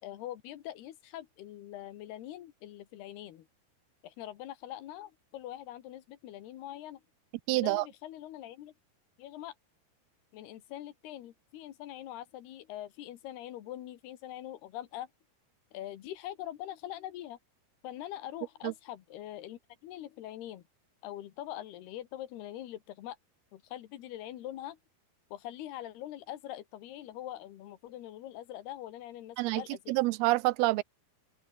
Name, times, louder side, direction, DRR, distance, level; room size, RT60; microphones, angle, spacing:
voice 1, 0.0-3.5 4.0-7.0 7.5-8.7 9.2-9.5 10.3-15.1 15.7-17.4 17.8-20.6 21.0-23.2 23.5-24.8 25.3-30.0, left 13 dB, 85° left, 3.6 m, -43 dB
voice 2, 7.5-7.8 18.6-18.7 29.4-29.6 29.9-30.8, right 20 dB, 85° right, 2.5 m, -27 dB
omnidirectional pair, 4.5 m